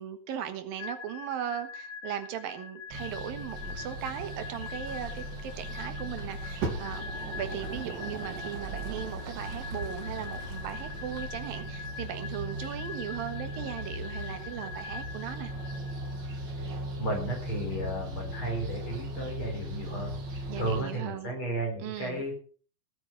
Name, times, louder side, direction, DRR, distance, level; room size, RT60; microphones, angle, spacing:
voice 1, 0.0-15.5 20.5-21.4 21.8-22.2, right 10 dB, 90° right, 9 dB, 3.4 m, -38 dB
sound 1, 0.8-16.4, left 6 dB, 85° left, 3.2 m, -44 dB
sound 2, 2.9-20.8, right 1 dB, 35° right, 2.2 m, -38 dB
Fire, 6.6-9.4 10.3-10.4, right 4 dB, 65° right, 4.7 m, -38 dB
voice 2, 17.0-20.1 20.6-22.3, right 1 dB, 35° left, 2 dB, 5.2 m, -33 dB
17.5 x 8.7 x 5.5 m, 0.41 s
omnidirectional pair, 4.0 m